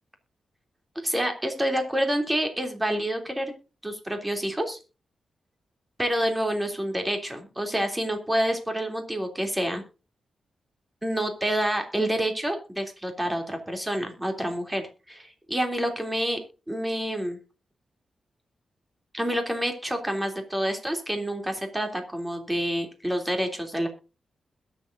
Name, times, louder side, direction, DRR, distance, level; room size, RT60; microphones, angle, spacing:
voice 1, 1.0-3.5 3.8-4.8 6.0-9.8 11.0-16.4 16.7-17.4 19.1-23.9, equal, 10° right, 4 dB, 3.2 m, -28 dB
21.5 x 7.5 x 2.7 m, 0.33 s
cardioid pair, 100°, 0 cm